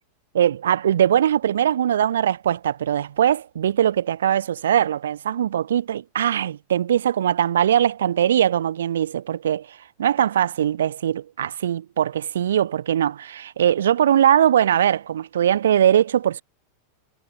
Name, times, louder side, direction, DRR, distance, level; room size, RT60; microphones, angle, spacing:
voice 1, 0.3-16.4, right 10 dB, 65° right, 0.9 m, -21 dB
figure-of-eight pair, 90°, 0 cm